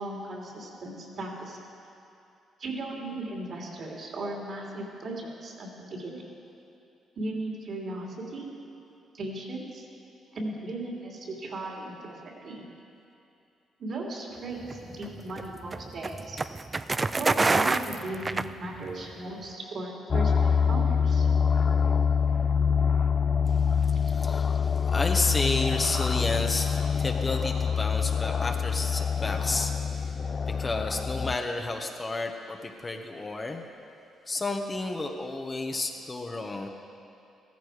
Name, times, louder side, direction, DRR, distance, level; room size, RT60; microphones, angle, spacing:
voice 1, 0.0-1.6 2.6-6.3 7.2-8.5 9.1-9.9 10.3-12.6 13.8-16.4 17.2-21.3, right 2 dB, 55° right, -1 dB, 3.0 m, -37 dB
sound 1, 14.6-19.1, right 3 dB, 25° right, 0.4 m, -27 dB
sound 2, 20.1-31.4, left 6 dB, 40° left, 0.5 m, -25 dB
voice 2, 23.5-30.2 30.5-33.6 34.3-36.7, left 2 dB, 25° left, 3 dB, 1.1 m, -32 dB
15.0 x 14.0 x 4.9 m, 2.7 s
cardioid pair, 90°, 0 cm